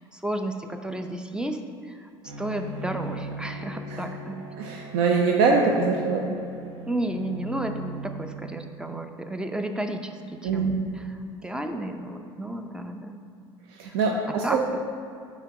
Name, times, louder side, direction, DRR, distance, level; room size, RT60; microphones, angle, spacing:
voice 1, 0.1-1.6 1.8-4.5 6.9-13.2 14.4-14.6, right 1 dB, 5° right, 6 dB, 0.5 m, -32 dB
Bowed string instrument, 2.2-8.9, right 1 dB, 80° right, 1.0 m, -39 dB
voice 2, 4.6-6.2 10.4-10.9 13.7-14.6, right 4 dB, 60° right, 0 dB, 0.6 m, -23 dB
9.0 x 3.1 x 4.8 m, 2.4 s
figure-of-eight pair, 65°, 14 cm